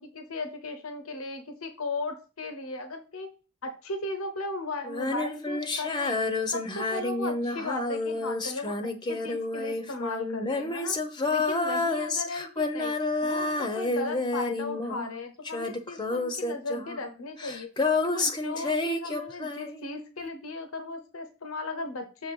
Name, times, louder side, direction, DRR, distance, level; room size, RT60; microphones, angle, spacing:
voice 1, 0.0-3.3 3.6-6.2 6.5-8.8 9.1-11.0 11.3-12.9 13.2-17.7 18.0-22.3, left 2 dB, 80° left, 7 dB, 0.9 m, -36 dB
Female singing, 4.8-15.2 15.4-19.9, left 3 dB, 20° left, 0.7 m, -29 dB
7.4 x 3.3 x 5.3 m, 0.33 s
head